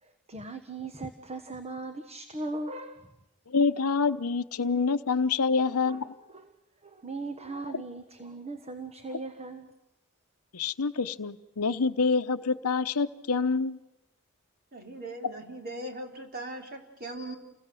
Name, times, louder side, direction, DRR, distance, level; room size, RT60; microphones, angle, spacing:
voice 1, 0.0-3.1 5.6-6.0 6.3-6.5 6.8-9.7, right 2 dB, 30° right, 7 dB, 1.3 m, -39 dB
voice 2, 3.5-6.1 10.5-13.8, left 4 dB, 80° left, 12 dB, 0.9 m, -26 dB
voice 3, 14.7-17.4, right 1 dB, 45° right, 3 dB, 3.8 m, -39 dB
29.5 x 21.5 x 7.7 m, 0.95 s
head